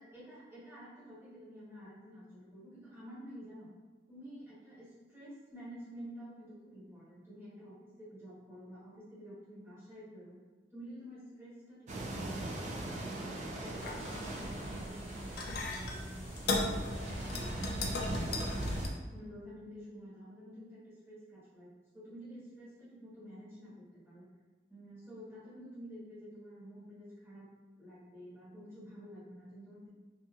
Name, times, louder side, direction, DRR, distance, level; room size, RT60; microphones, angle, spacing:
voice 1, 0.0-3.7 4.1-10.4 10.7-18.7 19.1-24.3 24.7-27.5 27.7-29.9, equal, 15° right, -12 dB, 1.5 m, -50 dB
sound 1, 11.9-18.9, right 1 dB, 40° right, 0.3 m, -39 dB
sound 2, 13.7-18.9, left 3 dB, 60° left, 0.4 m, -38 dB
2.8 x 2.6 x 2.3 m, 1.3 s
head